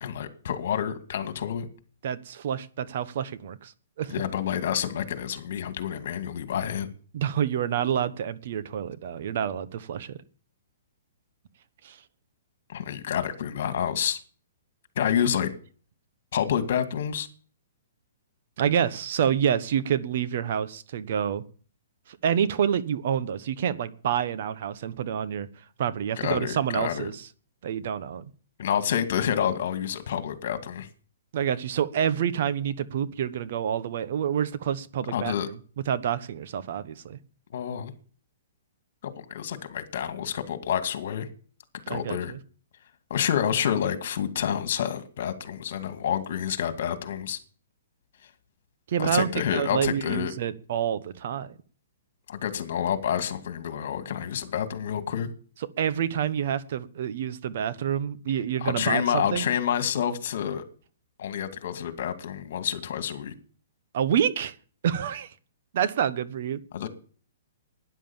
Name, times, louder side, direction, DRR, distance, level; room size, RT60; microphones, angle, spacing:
voice 1, 0.0-1.7 4.1-6.9 12.7-14.2 15.0-15.5 16.3-17.3 26.2-27.1 28.6-30.9 35.1-35.5 37.5-37.9 39.0-41.3 41.9-42.3 43.1-47.4 49.0-50.3 52.3-55.3 58.6-60.6 61.2-63.3 66.7-66.9, left 9 dB, 60° left, 2.2 m, -28 dB
voice 2, 2.0-3.7 4.0-4.1 7.1-10.2 11.8-12.0 18.6-21.4 22.2-25.5 25.8-27.2 27.6-28.2 31.3-35.6 35.9-37.2 41.9-42.4 48.9-51.5 55.8-59.4 63.9-64.5 64.8-65.3 65.7-66.6, right 9 dB, 55° right, 1.1 m, -28 dB
13.0 x 10.0 x 7.3 m
hypercardioid pair, 155°, 0 cm